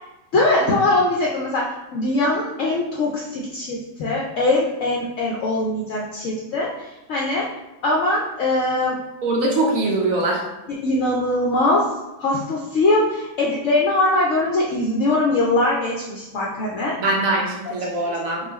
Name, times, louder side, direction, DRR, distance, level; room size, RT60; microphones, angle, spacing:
voice 1, 0.3-1.7 1.9-7.5 7.8-9.0 10.7-11.9 12.2-17.0 17.3-17.4 18.0-18.3, left 2 dB, 70° left, -3 dB, 0.7 m, -21 dB
voice 2, 9.2-10.4 17.0-18.4, right 2 dB, 65° right, -1 dB, 0.9 m, -22 dB
3.8 x 2.3 x 3.0 m, 1.0 s
omnidirectional pair, 1.8 m